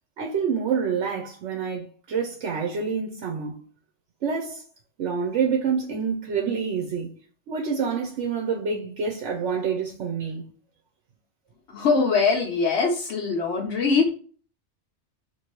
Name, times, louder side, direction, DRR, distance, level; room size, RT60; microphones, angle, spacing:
voice 1, 0.2-3.6 4.2-4.6 5.0-7.1 7.5-10.4, right 6 dB, 85° right, 1.0 m, -27 dB
voice 2, 11.7-14.1, left 4 dB, 85° left, 1.0 m, -22 dB
3.0 x 2.6 x 2.9 m
omnidirectional pair, 1.2 m